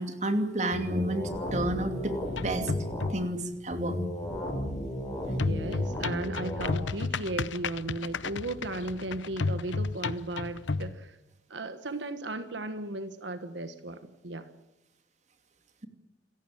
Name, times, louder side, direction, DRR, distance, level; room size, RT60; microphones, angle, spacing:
voice 1, 0.0-2.2 2.4-2.7 3.1-4.0 5.2-5.3, right 1 dB, 40° right, 7 dB, 2.6 m, -30 dB
sound 1, 0.7-3.1 3.7-6.7, left 1 dB, 15° left, 5.4 m, -34 dB
sound 2, 2.3-3.4 5.4-10.9, left 4 dB, 90° left, 0.8 m, -33 dB
voice 2, 5.4-11.2 11.5-14.5, right 2 dB, 80° right, 10 dB, 1.4 m, -36 dB
27.5 x 15.0 x 8.6 m, 0.87 s
head